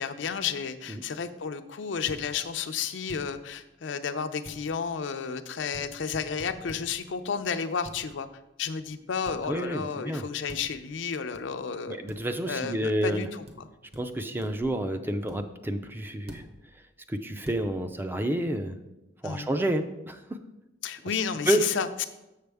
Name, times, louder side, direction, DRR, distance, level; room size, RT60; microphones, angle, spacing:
voice 1, 0.0-8.3 8.6-12.0 12.5-13.4 19.2-19.5 20.8-22.0, left 6 dB, 75° left, 9 dB, 0.5 m, -32 dB
sound 1, 2.1-2.2 3.1-3.2 4.5-4.6 5.7-5.9 6.1-6.9 7.9-8.0 9.3-9.4 10.5-10.7 11.3-11.4 12.1-12.2 13.5-13.6 13.9-14.0 14.4-14.7 15.3-15.4 16.3-16.5 17.5-17.6, equal, 35° right, 0.9 m, -43 dB
voice 2, 9.5-10.3 11.9-13.3 14.0-16.4 17.1-18.8 19.2-20.4 21.5-21.6, right 1 dB, 10° right, 7 dB, 0.4 m, -29 dB
6.9 x 6.6 x 3.4 m, 0.96 s
head